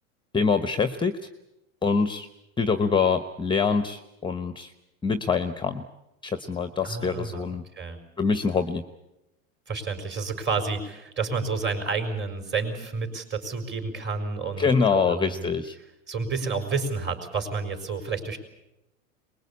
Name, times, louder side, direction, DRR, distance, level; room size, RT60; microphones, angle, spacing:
voice 1, 0.3-1.2 1.8-2.3 2.6-4.7 5.0-5.8 6.2-7.6 8.2-8.8 14.6-15.7, left 5 dB, 10° left, 10 dB, 1.0 m, -25 dB
voice 2, 6.8-7.5 7.8-8.0 9.7-15.5 16.1-18.4, right 4 dB, 25° right, 6 dB, 4.7 m, -30 dB
23.5 x 21.0 x 8.5 m, 0.90 s
hypercardioid pair, 115°, 40 cm